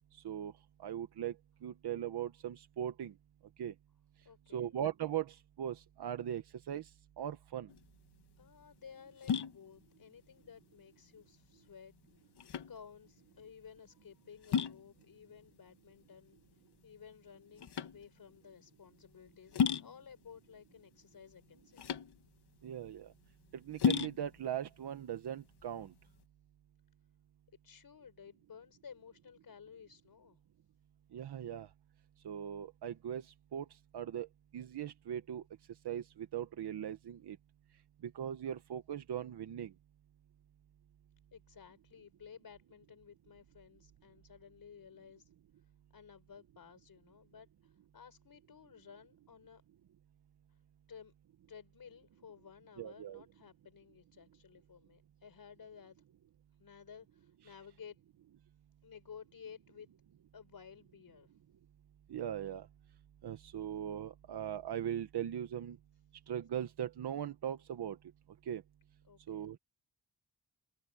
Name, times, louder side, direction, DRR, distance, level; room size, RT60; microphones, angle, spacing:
voice 1, 0.1-0.5 0.8-1.4 1.6-3.1 3.6-3.7 4.5-6.9 7.2-7.7 22.6-23.1 23.5-25.9 31.1-31.7 32.2-34.3 34.5-35.4 35.8-37.4 38.0-39.7 52.8-53.2 62.1-62.7 63.2-65.8 66.3-68.0 68.4-68.6 69.3-69.6, right 10 dB, 85° right, 1.2 m, -39 dB
voice 2, 4.2-4.8 8.4-11.9 12.7-21.9 27.6-30.4 41.3-45.3 45.9-49.6 50.9-51.1 51.5-56.0 56.6-58.0 58.8-59.9 60.3-61.3 69.0-69.4, left 7 dB, 60° left, 5.8 m, -55 dB
sound 1, 7.7-26.2, left 7 dB, 85° left, 1.7 m, -38 dB
wide cardioid pair, 125°, 39 cm